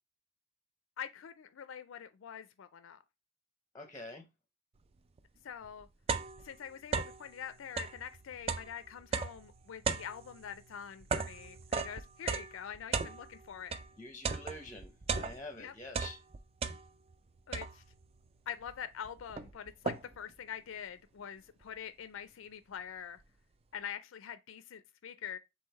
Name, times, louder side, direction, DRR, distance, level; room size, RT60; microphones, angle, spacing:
voice 1, 1.0-3.0 5.4-5.9 6.4-13.8 15.6-15.7 17.5-17.8 18.5-23.2 23.7-25.4, left 8 dB, 70° left, 0.4 m, -45 dB
voice 2, 3.7-4.2 14.0-16.2, left 2 dB, 15° left, 0.6 m, -46 dB
sound 1, 5.2-5.3 5.6-7.3 7.7-13.9 14.2-15.6 15.9-17.1 17.5-18.1 18.7-18.8 19.0-20.3, right 5 dB, 30° right, 0.3 m, -37 dB
3.8 x 3.1 x 4.0 m
head